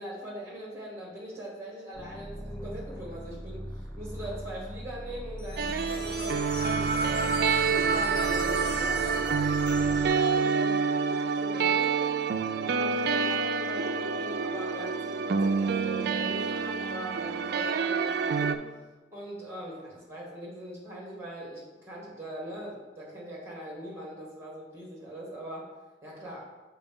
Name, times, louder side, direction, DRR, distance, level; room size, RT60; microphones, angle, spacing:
voice 1, 0.0-7.3 7.7-12.3 12.6-18.6 19.1-25.7 26.0-26.5, equal, 15° right, -3 dB, 1.7 m, -41 dB
sound 1, 1.9-10.2, equal, 10° left, 0.7 m, -40 dB
sound 2, 5.4-10.8, left 4 dB, 80° left, 1.1 m, -44 dB
sound 3, 5.6-18.6, right 5 dB, 60° right, 0.3 m, -27 dB
6.6 x 4.7 x 3.6 m, 1.2 s
head